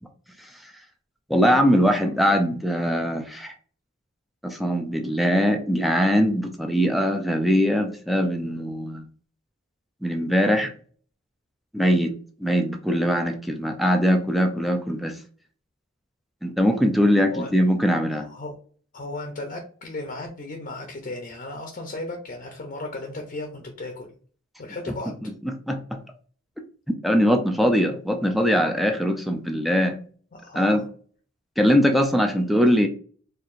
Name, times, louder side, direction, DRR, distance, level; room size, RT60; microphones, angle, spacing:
voice 1, 1.3-3.5 4.4-9.0 10.0-10.7 11.7-12.1 12.4-15.2 16.4-18.3 25.2-25.8 27.0-30.0 30.6-30.8 31.6-32.9, equal, ahead, 4 dB, 0.4 m, -21 dB
voice 2, 18.2-18.5 18.9-24.2 24.6-25.1 30.3-30.9, left 2 dB, 40° left, 3 dB, 0.6 m, -35 dB
4.6 x 2.5 x 2.5 m, 0.44 s
head